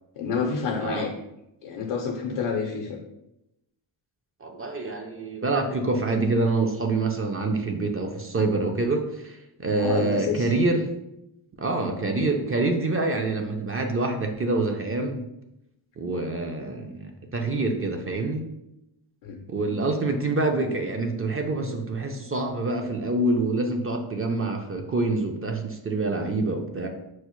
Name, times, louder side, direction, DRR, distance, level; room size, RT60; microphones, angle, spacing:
voice 1, 0.2-1.1 1.6-3.0 9.8-10.5 19.2-19.4, left 5 dB, 85° left, 0 dB, 0.6 m, -28 dB
voice 2, 4.4-10.9 11.6-15.2 16.0-18.4 19.5-26.9, right 2 dB, 30° right, 3 dB, 0.4 m, -26 dB
4.4 x 2.0 x 3.0 m, 0.87 s
cardioid pair, 75°, 50 cm